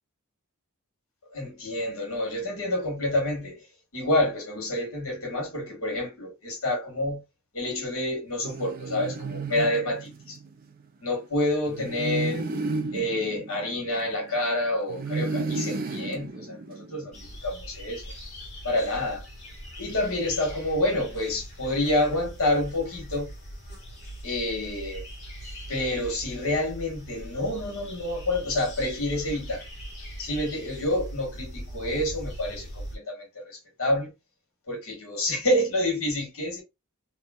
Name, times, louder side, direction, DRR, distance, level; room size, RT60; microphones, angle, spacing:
voice 1, 1.3-3.6 3.9-7.2 7.5-10.4 11.0-12.5 12.9-17.1 17.4-18.1 18.6-19.3 19.8-23.3 24.2-25.1 25.7-29.6 30.2-34.1 34.7-36.6, left 1 dB, 65° left, 1.5 m, -28 dB
sound 1, 8.4-10.5 11.7-14.4 14.9-17.1, right 3 dB, 40° right, 0.4 m, -33 dB
sound 2, 17.1-33.0, equal, 35° left, 1.5 m, -41 dB
3.5 x 2.1 x 2.4 m
head